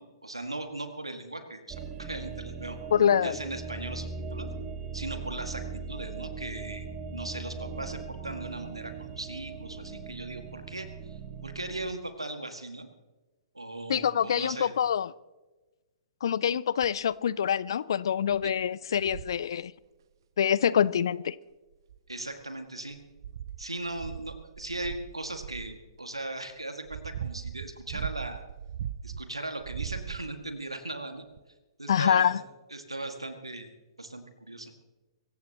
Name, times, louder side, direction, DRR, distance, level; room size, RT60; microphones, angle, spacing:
voice 1, 0.0-2.8 3.2-4.5 4.9-6.9 7.1-12.9 13.5-14.7 18.4-18.5 22.1-23.0 23.6-28.4 29.0-31.2 31.8-32.3 32.7-33.7 34.0-34.7, right 2 dB, 90° right, 6 dB, 2.0 m, -38 dB
sound 1, 1.7-11.9, right 5 dB, 25° right, 1.3 m, -39 dB
voice 2, 2.9-3.4 13.9-15.1 16.2-19.7 20.4-21.4 31.9-32.4, left 8 dB, 60° left, 21 dB, 0.5 m, -25 dB
sound 2, 16.8-17.1 17.7-17.8 18.3-18.5 19.0-19.4 20.8-20.9 21.7-22.4 22.9-25.8 26.5-29.2 29.6-30.5 31.4-31.5, right 9 dB, 55° right, 0.6 m, -39 dB
24.5 x 15.0 x 3.0 m, 1.2 s
figure-of-eight pair, 115°, 3 cm